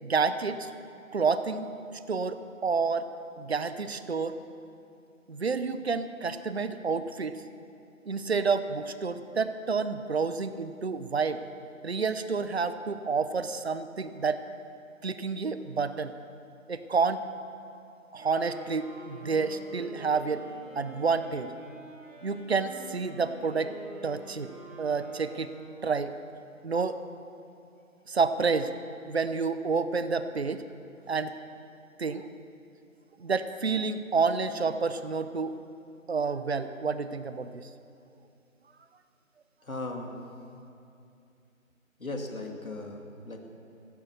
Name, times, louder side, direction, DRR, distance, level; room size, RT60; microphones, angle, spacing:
voice 1, 0.0-0.7 1.1-1.7 2.1-3.1 3.4-4.3 5.3-7.4 8.1-11.4 11.8-14.4 15.0-16.1 16.7-17.2 18.1-20.4 20.8-21.5 22.2-23.7 24.0-24.5 24.8-25.5 25.8-26.1 26.6-27.0 28.1-28.7 29.0-30.6 31.1-31.3 32.0-32.3 33.2-35.5 36.1-37.7, right 5 dB, 50° right, 11 dB, 0.7 m, -29 dB
Wind instrument woodwind instrument, 18.1-26.0, right 1 dB, 20° right, 2.5 m, -47 dB
voice 2, 39.6-40.2 42.0-43.4, left 2 dB, 85° left, 2 dB, 2.6 m, -37 dB
15.0 x 10.5 x 6.6 m, 2.6 s
figure-of-eight pair, 165°, 41 cm